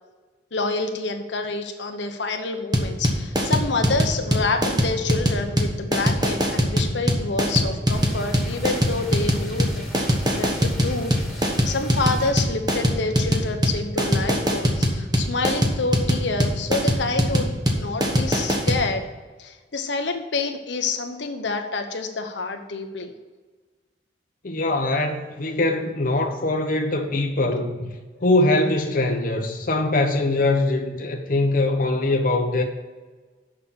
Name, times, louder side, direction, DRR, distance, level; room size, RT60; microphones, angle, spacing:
voice 1, 0.5-9.8 10.3-19.1 19.4-23.2, left 3 dB, 75° left, 5 dB, 0.9 m, -28 dB
sound 1, 2.7-18.8, equal, 20° right, 1.2 m, -21 dB
sound 2, 7.9-12.3, equal, ahead, 1.9 m, -39 dB
voice 2, 24.4-27.9 28.2-32.6, left 2 dB, 45° left, 2 dB, 0.9 m, -22 dB
6.9 x 5.8 x 6.9 m, 1.3 s
head